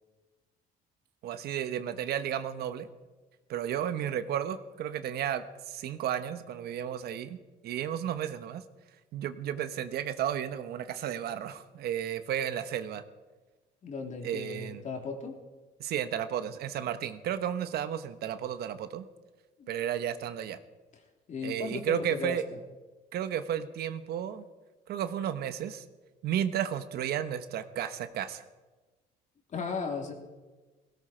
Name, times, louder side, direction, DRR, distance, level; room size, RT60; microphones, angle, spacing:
voice 1, 1.2-2.9 3.5-7.4 7.6-8.6 9.1-13.0 14.2-14.8 15.8-19.1 19.7-20.6 21.4-22.4 23.1-24.4 24.9-25.8 26.2-28.4, right 10 dB, 70° right, 11 dB, 1.1 m, -33 dB
voice 2, 13.8-15.4 19.6-19.8 21.3-22.4 29.5-30.1, left 4 dB, 45° left, 2 dB, 3.3 m, -36 dB
17.5 x 17.0 x 4.5 m, 1.2 s
cardioid pair, 110°, 17 cm